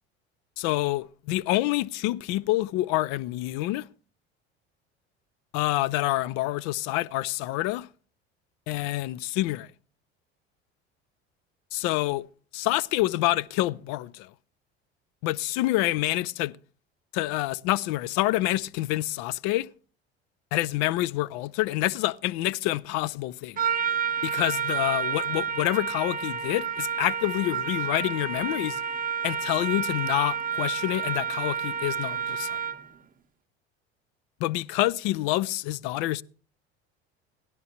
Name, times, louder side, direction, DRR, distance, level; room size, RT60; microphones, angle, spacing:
voice 1, 0.6-3.8 5.5-7.9 8.7-9.7 11.7-12.2 12.5-14.3 15.2-16.5 17.1-19.7 20.5-23.6 24.2-28.8 29.2-32.6 34.4-36.2, left 17 dB, 60° left, 0.5 m, -27 dB
Trumpet, 23.6-32.9, right 7 dB, 25° right, 0.7 m, -30 dB
16.5 x 11.0 x 2.8 m
hypercardioid pair, 70°, 33 cm